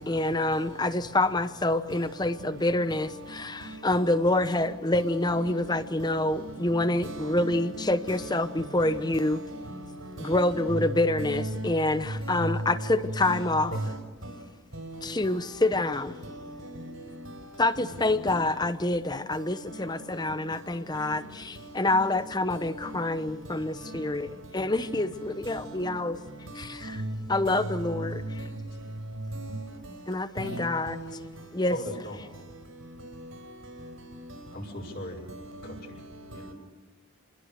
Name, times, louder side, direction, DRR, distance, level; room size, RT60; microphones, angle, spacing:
voice 1, 0.1-9.4 10.2-13.7 15.0-16.1 17.6-26.2 26.6-27.0 27.3-28.2 30.1-31.0 31.5-31.8, left 2 dB, 20° left, 0.8 m, -27 dB
voice 2, 3.9-4.7 4.9-5.8 7.0-8.4 8.8-10.6 11.2-11.8 12.2-12.7 13.2-13.4 13.7-13.8 14.7-15.0 16.4-16.6 18.3-18.4 22.5-22.9 25.4-25.9 26.5-26.6 26.9-27.1 27.5-27.7 29.3-29.6 30.4-31.1 35.3-35.7 36.3-36.5, right 1 dB, 80° right, 5.2 m, -37 dB
voice 3, 31.7-32.2 34.5-35.2 35.6-36.0 36.3-36.5, left 1 dB, 50° left, 5.9 m, -37 dB
27.0 x 21.0 x 6.7 m
head